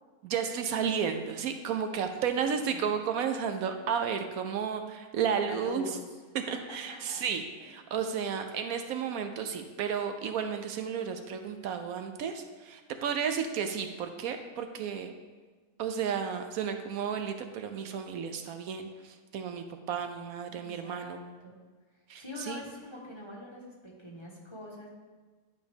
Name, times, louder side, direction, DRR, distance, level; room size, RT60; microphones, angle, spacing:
voice 1, 0.2-5.8 6.5-15.1 15.8-21.2 22.1-22.6, right 7 dB, 80° right, 7 dB, 1.1 m, -33 dB
voice 2, 2.0-2.9 5.4-6.2 6.5-7.2 7.6-7.7 20.5-21.6 22.2-24.9, left 1 dB, 20° left, -4 dB, 1.3 m, -44 dB
11.0 x 5.0 x 3.5 m, 1.4 s
omnidirectional pair, 1.5 m